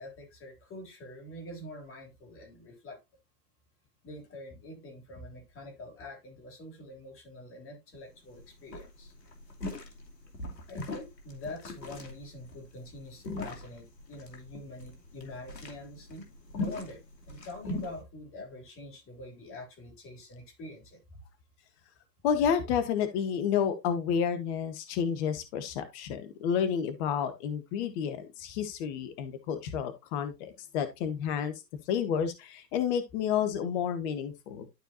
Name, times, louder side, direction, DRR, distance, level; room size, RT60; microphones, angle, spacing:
voice 1, 0.0-3.0 4.0-9.1 10.7-16.3 16.5-21.0, left 1 dB, 25° left, 3.3 m, -45 dB
sound 1, 7.9-8.0 8.3-8.4 8.7-18.0, left 2 dB, 85° left, 2.8 m, -40 dB
voice 2, 22.2-31.5 31.9-34.7, left 7 dB, 40° left, 1.4 m, -30 dB
12.5 x 4.5 x 2.8 m
hypercardioid pair, 115°, 49 cm